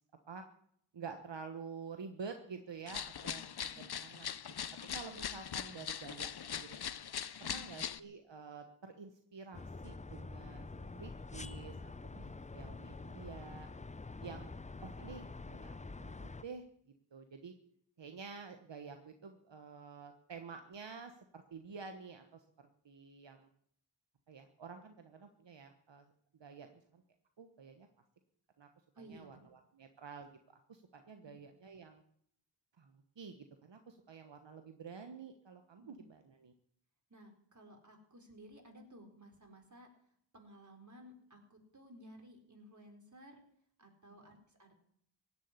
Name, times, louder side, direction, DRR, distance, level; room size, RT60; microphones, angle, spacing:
voice 1, 0.9-4.5 4.9-7.0 7.4-12.2 12.5-13.7 14.2-16.6 17.1-17.5 18.0-23.5 24.3-26.1 26.4-26.7 26.9-27.0 27.4-27.9 28.6-28.7 29.0-30.3 30.7-32.0 32.8-36.5 44.1-44.2, right 5 dB, 75° right, 6 dB, 1.3 m, -50 dB
sound 1, 2.9-8.0, left 8 dB, 60° left, 0.7 m, -41 dB
voice 2, 3.6-4.0 7.4-7.7 12.1-12.3 28.9-29.4 31.2-31.4 35.9-36.0 37.1-39.9 40.3-43.4 43.8-44.8, equal, 40° right, 3 dB, 4.0 m, -57 dB
sound 2, 9.5-16.4, left 3 dB, 15° left, 0.5 m, -47 dB
16.5 x 7.5 x 9.6 m, 0.67 s
cardioid pair, 50°, 44 cm